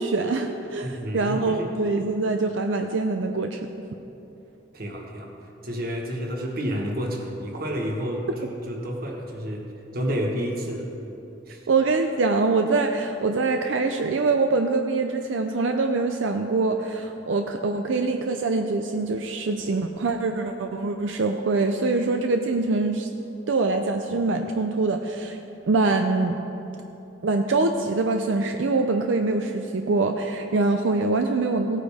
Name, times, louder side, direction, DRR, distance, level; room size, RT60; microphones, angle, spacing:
voice 1, 0.0-3.7 11.7-23.1 23.5-25.4 25.7-26.4 27.2-31.8, right 3 dB, 85° right, 5 dB, 0.5 m, -24 dB
voice 2, 0.8-1.8 4.7-5.3 5.6-8.3 8.7-9.7 9.9-11.1 11.5-11.6, equal, 50° right, 1 dB, 1.4 m, -30 dB
17.0 x 9.1 x 3.5 m, 2.9 s
head